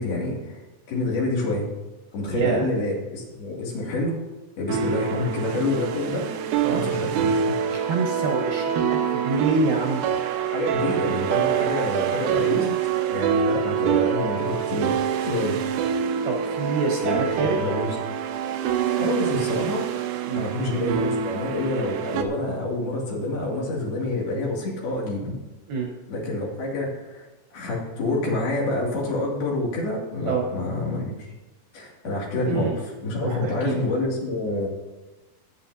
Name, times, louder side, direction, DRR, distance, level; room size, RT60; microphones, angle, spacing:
voice 1, 0.0-1.7 2.1-4.2 4.6-6.3 6.7-7.6 10.3-12.8 13.1-15.6 17.0-17.9 18.6-19.9 20.4-25.3 26.1-31.3 31.7-34.7, left 2 dB, 60° left, -3 dB, 4.2 m, -27 dB
voice 2, 2.3-2.6 6.6-6.8 7.7-10.0 16.2-17.6 20.3-20.4 25.7-25.9 30.2-30.5 32.4-32.8 33.2-33.7, right 4 dB, 65° right, 0 dB, 2.5 m, -26 dB
sound 1, 4.7-22.2, right 8 dB, 85° right, 3.2 m, -26 dB
20.0 x 9.0 x 2.8 m, 1.1 s
omnidirectional pair, 5.3 m